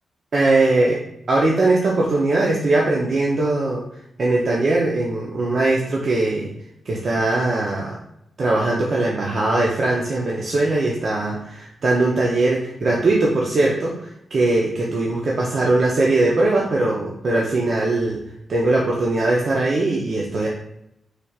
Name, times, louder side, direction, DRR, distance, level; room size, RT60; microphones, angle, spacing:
voice 1, 0.3-1.0 1.3-3.8 4.2-6.5 6.9-7.9 8.4-18.2 18.5-20.5, right 2 dB, 55° right, -3 dB, 0.6 m, -20 dB
4.1 x 3.3 x 2.4 m, 0.80 s
cardioid pair, 85°, 0 cm